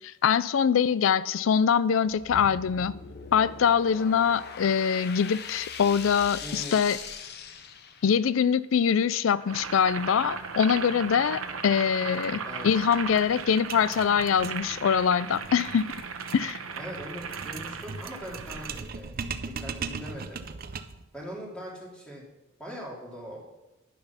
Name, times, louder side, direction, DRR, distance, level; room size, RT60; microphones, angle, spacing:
voice 1, 0.0-3.0 3.3-7.0 8.0-15.9 16.3-16.6, left 7 dB, 70° left, 0.4 m, -24 dB
sound 1, 2.1-8.4, left 6 dB, 50° left, 0.8 m, -41 dB
voice 2, 6.4-6.8 12.4-12.7 16.8-20.4 21.1-22.3 22.6-23.5, equal, 5° left, 2.4 m, -41 dB
Boiling, 9.4-18.8, right 5 dB, 90° right, 0.9 m, -37 dB
sound 2, 12.2-12.3 12.6-12.7 12.9-21.1, right 5 dB, 45° right, 0.5 m, -39 dB
10.0 x 6.9 x 5.7 m
head